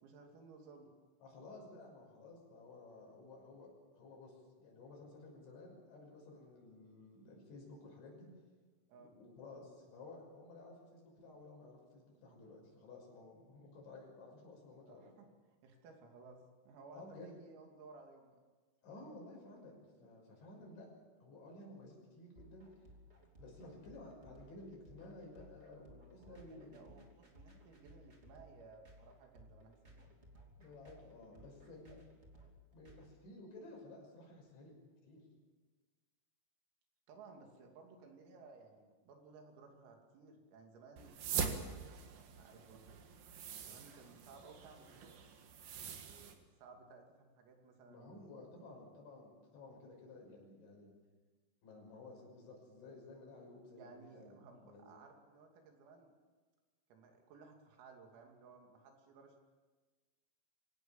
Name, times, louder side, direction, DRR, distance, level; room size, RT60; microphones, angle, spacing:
voice 1, 0.0-0.9 8.9-9.1 14.9-15.3 15.6-16.4 16.7-18.4 26.2-30.1 31.3-31.5 31.9-32.0 37.1-41.2 42.1-43.0 43.6-45.2 46.0-48.3 53.8-56.1 56.9-59.4, right 4 dB, 90° right, 2 dB, 5.5 m, -58 dB
voice 2, 1.2-8.3 9.0-15.1 16.9-17.3 18.8-20.9 21.2-22.9 23.4-27.1 30.6-32.0 32.7-34.8 35.0-35.2 47.9-50.9 51.6-54.9, left 2 dB, 65° left, -1 dB, 8.5 m, -54 dB
sound 1, 22.3-33.0, equal, 20° right, 1.8 m, -60 dB
sound 2, 41.0-46.3, right 6 dB, 60° right, 2.8 m, -43 dB
25.0 x 17.5 x 7.3 m, 1.3 s
omnidirectional pair, 5.9 m